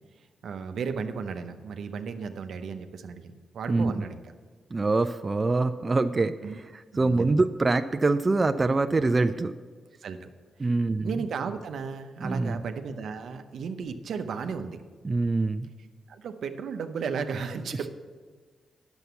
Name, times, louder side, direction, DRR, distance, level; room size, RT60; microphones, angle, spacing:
voice 1, 0.4-4.2 6.4-6.6 6.9-7.3 10.0-10.3 10.6-10.7 11.0-14.8 16.1-17.9, right 5 dB, 75° right, 7 dB, 0.7 m, -34 dB
voice 2, 4.7-9.5 10.6-11.1 12.2-12.6 15.0-15.7, right 3 dB, 35° right, 9 dB, 0.4 m, -25 dB
9.2 x 7.1 x 6.8 m, 1.5 s
cardioid pair, 65°, 0 cm